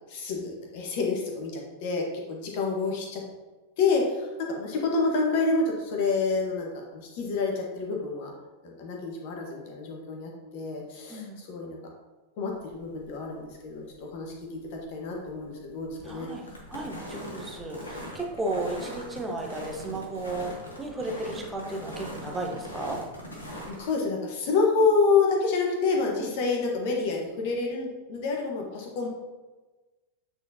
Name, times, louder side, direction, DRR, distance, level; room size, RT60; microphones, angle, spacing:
voice 1, 0.1-3.2 3.8-8.3 8.6-11.8 12.4-16.3 23.7-29.1, left 4 dB, 50° left, 0 dB, 1.3 m, -28 dB
voice 2, 11.1-11.4 16.0-23.0 26.1-26.3, right 2 dB, 10° right, 0 dB, 1.1 m, -34 dB
sound 1, 12.5-23.9, equal, 75° left, 1.4 m, -41 dB
8.8 x 4.2 x 2.9 m, 1.2 s
figure-of-eight pair, 90°, 0 cm